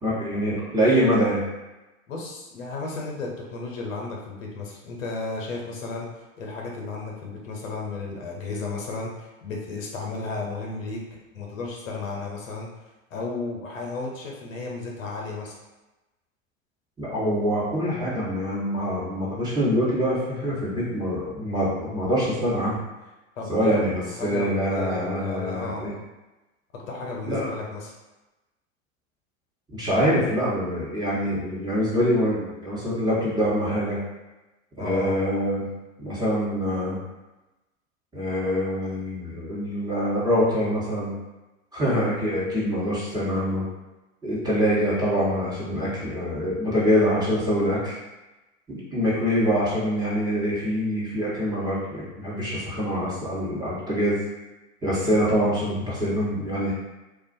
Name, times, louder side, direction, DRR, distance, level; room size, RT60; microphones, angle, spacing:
voice 1, 0.0-1.4 17.0-22.8 23.5-25.9 27.3-27.5 29.7-34.0 34.8-35.6 36.0-37.0 38.1-41.1 41.7-43.6 44.2-48.0 48.7-54.2 54.8-56.7, equal, 10° right, -9 dB, 1.0 m, -25 dB
voice 2, 2.1-6.1 6.4-11.0 11.3-12.7 13.1-15.6 23.4-26.0 26.7-27.9 34.8-35.2 49.6-49.8, left 3 dB, 80° left, -1 dB, 0.7 m, -33 dB
2.4 x 2.2 x 2.6 m, 1.1 s
hypercardioid pair, 90°, 39 cm